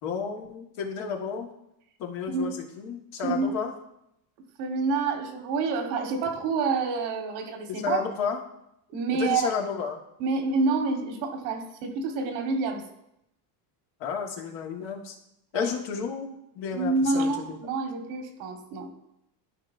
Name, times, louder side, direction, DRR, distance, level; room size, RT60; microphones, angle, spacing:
voice 1, 0.0-1.5 2.0-3.7 7.7-8.4 9.1-10.0 14.0-15.2 15.5-17.6, left 6 dB, 65° left, 1 dB, 1.7 m, -32 dB
voice 2, 3.2-3.5 4.6-8.0 8.9-9.5 10.2-12.8 15.5-15.7 16.7-18.9, right 4 dB, 80° right, 4 dB, 1.5 m, -28 dB
12.5 x 4.9 x 2.6 m, 0.81 s
cardioid pair, 125°, 47 cm